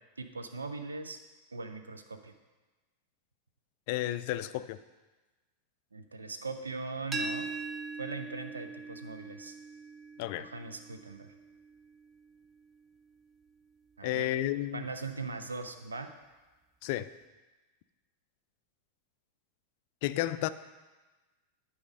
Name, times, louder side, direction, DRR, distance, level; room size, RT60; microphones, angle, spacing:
voice 1, 0.2-1.2 1.5-2.3 5.9-7.5 8.0-9.6 10.3-11.3 14.0-14.3 14.7-16.1, right 3 dB, 75° right, 7 dB, 0.7 m, -40 dB
voice 2, 3.9-4.8 10.2-10.5 14.0-14.9 16.8-17.1 20.0-20.5, left 14 dB, 50° left, 14 dB, 0.3 m, -32 dB
sound 1, 7.1-12.9, right 3 dB, 20° right, 0.5 m, -41 dB
10.5 x 4.9 x 5.2 m, 1.2 s
figure-of-eight pair, 90°, 0 cm